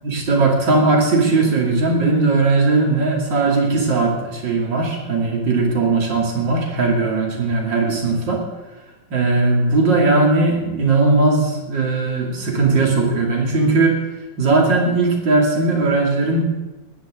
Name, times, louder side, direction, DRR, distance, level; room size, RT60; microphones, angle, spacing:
voice 1, 0.0-8.4 9.1-14.0 14.4-16.4, right 3 dB, 90° right, 0 dB, 3.4 m, -18 dB
19.0 x 14.0 x 3.8 m, 1.1 s
omnidirectional pair, 1.9 m